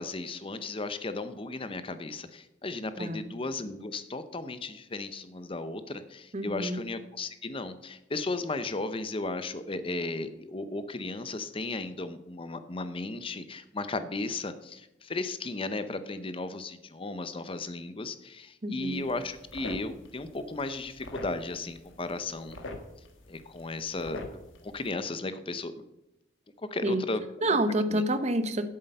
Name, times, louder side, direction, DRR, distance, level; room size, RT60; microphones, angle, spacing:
voice 1, 0.0-22.6 23.3-24.3 24.6-25.7 26.7-27.6 27.9-28.0, left 2 dB, 30° left, 12 dB, 0.6 m, -35 dB
voice 2, 6.3-6.8 18.6-19.1 26.8-27.0 27.4-28.7, right 1 dB, 35° right, 10 dB, 0.8 m, -28 dB
sound 1, 18.9-24.9, left 2 dB, 80° left, 1.4 m, -45 dB
8.3 x 7.6 x 6.7 m, 0.89 s
head